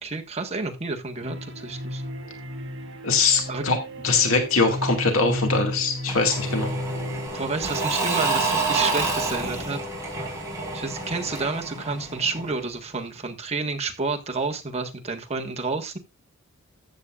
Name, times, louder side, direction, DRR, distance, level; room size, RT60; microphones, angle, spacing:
voice 1, 0.0-2.0 3.5-3.6 7.3-9.8 10.7-16.0, right 4 dB, 30° right, 1.5 m, -30 dB
sound 1, 1.2-7.3, equal, 65° right, 5.5 m, -33 dB
voice 2, 3.0-3.8 4.0-6.7, left 4 dB, 70° left, 2.1 m, -22 dB
Engine / Mechanisms / Drill, 6.1-12.8, right 3 dB, 15° right, 4.9 m, -28 dB
14.5 x 8.5 x 2.4 m
head